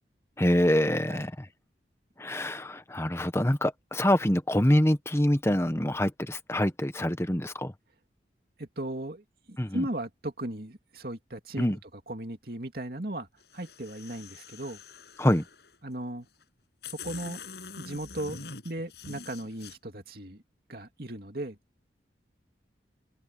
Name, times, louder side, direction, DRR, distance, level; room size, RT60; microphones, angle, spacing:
voice 1, 0.4-1.3 2.2-7.7 9.6-9.8 11.6-11.8 15.2-15.4, left 1 dB, 15° left, 1.1 m, -25 dB
voice 2, 8.6-13.3 13.5-14.8 15.8-16.3 16.9-17.4 17.8-20.4 20.7-21.6, right 1 dB, 55° right, 2.7 m, -37 dB
sound 1, 13.4-15.7 16.4-16.5 16.8-19.7, left 5 dB, 65° left, 7.9 m, -45 dB
head